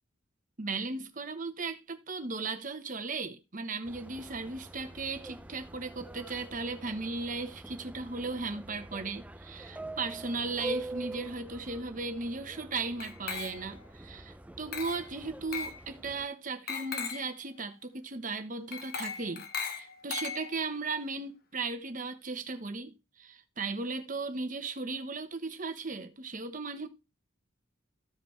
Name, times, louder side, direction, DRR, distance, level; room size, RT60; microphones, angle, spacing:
voice 1, 0.6-19.5 19.7-26.9, right 3 dB, 40° right, 1.2 m, -36 dB
Subway metro underground, 3.8-16.2, right 2 dB, 5° right, 0.5 m, -45 dB
Glass, 13.0-13.8 14.7-15.1 15.5-15.8 16.7-17.3 18.7-20.7, left 6 dB, 50° left, 1.1 m, -38 dB
14.5 x 5.1 x 3.2 m
head